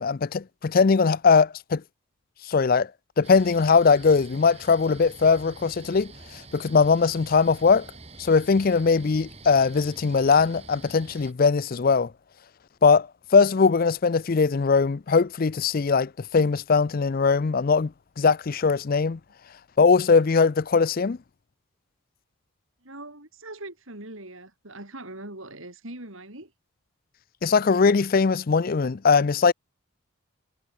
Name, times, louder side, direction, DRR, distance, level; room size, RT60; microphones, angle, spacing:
voice 1, 0.0-1.8 2.5-2.9 3.2-6.1 6.5-7.9 8.2-12.1 12.8-13.1 13.3-17.9 18.2-19.2 19.8-21.2 27.4-29.5, left 5 dB, 40° left, 0.4 m, -20 dB
sound 1, 3.2-11.3, right 3 dB, 30° right, 2.2 m, -46 dB
voice 2, 22.8-26.5, right 2 dB, 65° right, 5.2 m, -41 dB
head